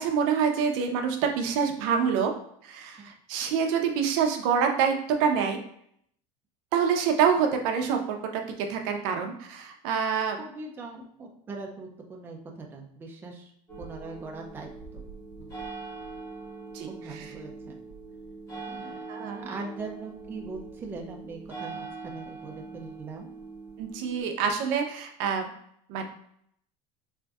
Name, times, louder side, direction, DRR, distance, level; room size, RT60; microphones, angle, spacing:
voice 1, 0.0-2.3 2.6-4.9 5.2-5.6 6.7-8.4 8.7-10.4 16.7-17.3 19.1-19.5 23.8-25.5 25.9-26.0, right 7 dB, 65° right, 4 dB, 0.5 m, -26 dB
voice 2, 10.4-13.5 13.8-15.0 15.4-15.5 16.9-17.8 18.7-19.0 19.4-23.3, right 3 dB, 10° right, 0 dB, 0.4 m, -41 dB
sound 1, 13.7-24.2, right 4 dB, 20° left, 1.3 m, -42 dB
4.4 x 2.5 x 2.3 m, 0.69 s
cardioid pair, 170°, 17 cm